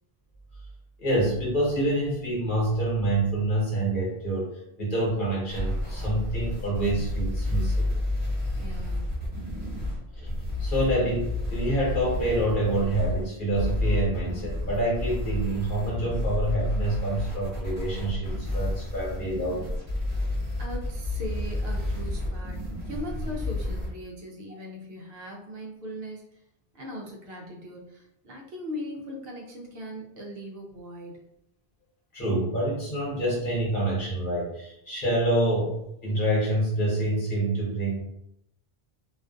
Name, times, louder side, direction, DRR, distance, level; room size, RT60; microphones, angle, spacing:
voice 1, 1.0-4.5 4.8-7.9 10.2-10.3 10.6-19.7 32.1-38.0, right 1 dB, 55° left, -5 dB, 1.1 m, -27 dB
sound 1, 5.5-23.9, left 1 dB, 30° right, 1.3 m, -30 dB
voice 2, 8.6-9.1 20.6-26.2 26.7-31.2, left 1 dB, 70° right, 0 dB, 0.8 m, -39 dB
2.4 x 2.3 x 2.4 m, 0.78 s
omnidirectional pair, 1.1 m